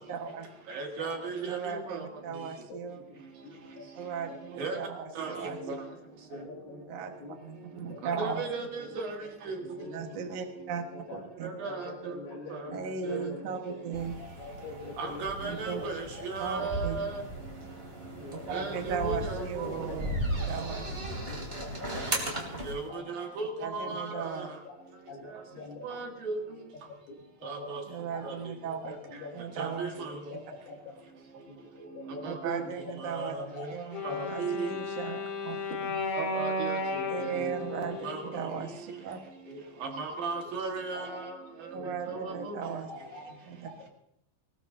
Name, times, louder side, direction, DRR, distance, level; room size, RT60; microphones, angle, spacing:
voice 1, 0.1-0.5 1.5-3.0 3.9-5.6 6.9-7.1 7.4-8.4 9.9-10.8 11.1-11.5 12.7-14.1 15.4-15.8 16.4-17.1 18.3-20.2 20.5-20.8 23.6-24.5 27.9-28.9 29.3-29.9 32.2-33.3 33.7-34.0 34.3-35.6 37.1-39.2 41.7-42.9 43.5-43.7, right 6 dB, 90° right, 3 dB, 1.4 m, -37 dB
voice 2, 0.7-2.0 4.6-4.8 5.2-5.3 5.7-5.8 8.2-9.2 9.5-9.6 11.6-11.9 13.1-13.2 15.0-17.2 18.5-19.7 22.6-22.8 23.2-24.2 25.8-26.4 27.5-27.8 29.6-30.1 32.2-32.6 33.0-33.4 34.0-34.7 36.2-36.8 38.0-38.2 40.0-41.2 42.1-42.5, right 4 dB, 55° right, 1 dB, 3.1 m, -35 dB
voice 3, 2.3-2.8 3.1-3.2 3.4-3.9 4.3-4.4 5.4-5.7 6.3-6.8 7.2-7.4 7.9-8.4 8.8-8.9 9.6-10.3 10.9-11.2 11.6-13.8 14.2-16.2 16.6-16.7 18.2-19.7 20.3-20.7 21.3-22.3 22.9-23.0 23.8-24.2 25.1-25.8 27.1-27.2 28.1-28.2 28.7-29.4 30.0-30.8 31.5-33.7 34.0-34.8 36.9-37.1 37.4-37.7 38.1-38.2 39.5-39.6 40.9-41.1 41.7-41.9 42.4-42.5 42.9-43.4, left 3 dB, 75° left, -5 dB, 4.7 m, -45 dB
sound 1, 13.9-22.8, right 1 dB, 15° right, 2.4 m, -37 dB
Wind instrument woodwind instrument, 33.9-39.0, left 2 dB, 50° left, 2.1 m, -34 dB
21.5 x 19.5 x 2.8 m, 0.75 s
omnidirectional pair, 5.6 m